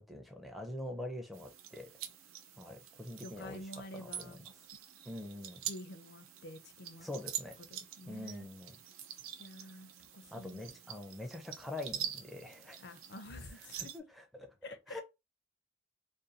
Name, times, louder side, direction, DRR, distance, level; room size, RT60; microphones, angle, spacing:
voice 1, 0.0-1.9 2.6-4.4 5.1-5.6 7.0-7.6 8.1-8.8 10.3-12.9 13.8-14.0 14.3-14.5 14.9-15.0, left 1 dB, ahead, 0.4 m, -44 dB
sound 1, 1.3-14.0, right 10 dB, 85° right, 0.4 m, -46 dB
voice 2, 3.2-4.5 5.7-7.1 7.7-8.5 9.4-10.6 12.8-13.9 14.6-15.0, left 1 dB, 55° left, 0.5 m, -49 dB
2.5 x 2.2 x 2.7 m
head